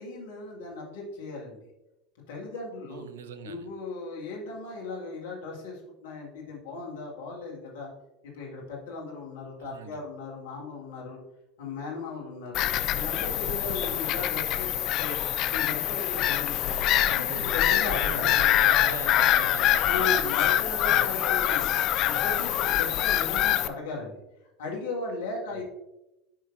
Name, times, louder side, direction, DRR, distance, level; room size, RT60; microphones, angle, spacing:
voice 1, 0.0-1.6 2.3-3.1 3.4-7.9 8.2-11.2 11.6-12.7 12.9-15.2 15.5-16.8 17.1-18.3 19.6-21.7 22.0-24.2 24.6-25.6, left 3 dB, 70° left, -2 dB, 2.0 m, -37 dB
voice 2, 2.9-3.7 9.6-10.0 17.0-20.2 25.5-25.6, right 6 dB, 75° right, 10 dB, 0.6 m, -41 dB
Bird vocalization bird call bird song / Gull seagull, 12.5-23.7, left 12 dB, 50° left, 0.4 m, -25 dB
10.5 x 5.1 x 2.6 m, 0.93 s
hypercardioid pair, 80°, 0 cm